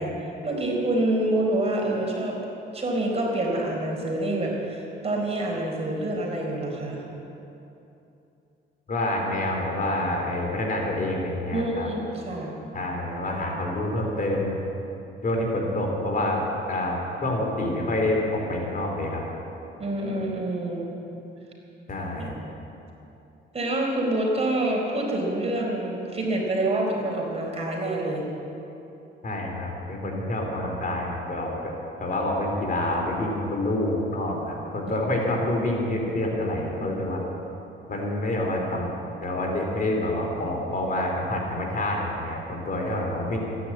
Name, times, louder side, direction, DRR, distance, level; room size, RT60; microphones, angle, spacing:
voice 1, 0.0-2.4 2.7-7.0 11.5-12.5 19.8-21.0 22.2-22.4 23.5-28.3 36.8-36.9, right 1 dB, 30° right, -1 dB, 4.1 m, -27 dB
voice 2, 8.9-11.9 12.7-14.5 15.2-16.4 16.7-19.2 21.9-22.4 29.2-31.7 32.0-37.2 37.9-38.9 39.2-43.6, left 1 dB, 45° left, 0 dB, 3.2 m, -27 dB
14.5 x 10.5 x 8.4 m, 2.9 s
cardioid pair, 90°, 20 cm